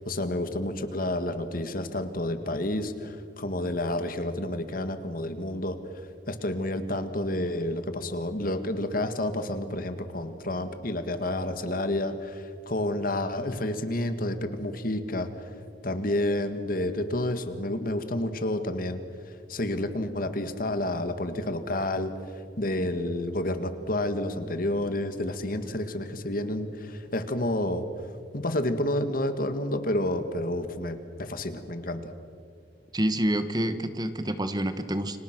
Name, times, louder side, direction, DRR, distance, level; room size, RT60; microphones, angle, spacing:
voice 1, 0.0-5.8 6.3-15.5 15.8-19.0 19.3-22.1 22.6-27.8 28.3-32.1, left 1 dB, 55° left, 9 dB, 1.9 m, -30 dB
voice 2, 32.9-35.2, right 1 dB, 25° right, 10 dB, 1.3 m, -27 dB
30.0 x 25.5 x 6.2 m, 2.2 s
head